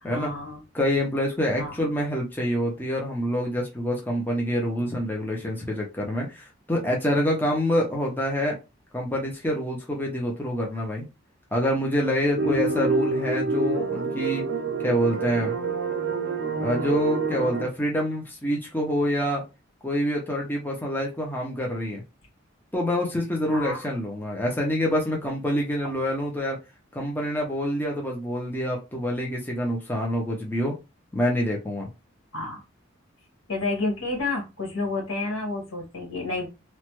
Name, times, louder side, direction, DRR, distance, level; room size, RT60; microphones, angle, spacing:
voice 1, 0.0-0.6 1.6-1.8 12.4-12.8 23.5-23.8 32.3-32.6 33.5-36.5, left 3 dB, 70° left, 1.5 m, -30 dB
voice 2, 0.7-8.6 8.9-11.1 11.5-14.4 14.8-15.6 16.6-19.4 19.8-22.0 22.7-26.6 26.9-30.8 31.1-31.9, equal, 10° left, 0.7 m, -26 dB
sound 1, 12.3-17.7, right 4 dB, 60° right, 0.5 m, -27 dB
3.1 x 2.2 x 3.0 m
head